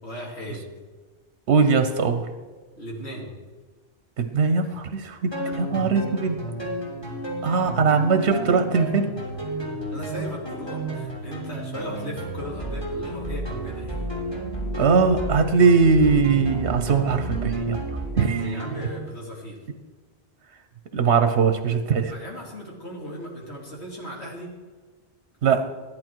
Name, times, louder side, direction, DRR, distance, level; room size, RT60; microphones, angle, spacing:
voice 1, 0.0-0.7 2.8-3.3 5.4-5.5 9.9-14.1 18.4-19.6 22.1-24.5 25.4-25.6, equal, 80° left, -2 dB, 2.9 m, -37 dB
voice 2, 1.5-2.3 4.2-6.4 7.4-9.1 14.8-17.8 18.2-18.6 20.9-22.1 25.4-25.6, right 5 dB, 85° right, 8 dB, 1.1 m, -20 dB
sound 1, 5.3-19.0, right 2 dB, 25° left, 3.2 m, -31 dB
14.0 x 11.0 x 4.6 m, 1.4 s
omnidirectional pair, 1.1 m